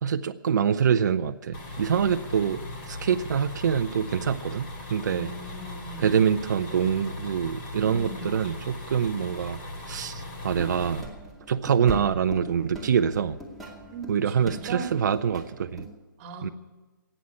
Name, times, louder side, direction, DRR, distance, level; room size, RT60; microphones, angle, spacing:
voice 1, 0.0-2.6 2.9-5.3 6.0-9.6 9.9-11.1 11.5-13.4 14.1-15.9 16.4-16.5, right 7 dB, 55° right, 9 dB, 0.7 m, -25 dB
sound 1, 1.5-11.0, left 2 dB, 30° left, 2.9 m, -39 dB
voice 2, 5.0-6.2 7.8-8.3 13.9-14.9 16.2-16.5, right 2 dB, 30° right, 4 dB, 2.2 m, -39 dB
sound 2, 10.5-15.9, right 1 dB, ahead, 2.3 m, -40 dB
14.5 x 9.0 x 9.6 m, 1.2 s
hypercardioid pair, 150°, 11 cm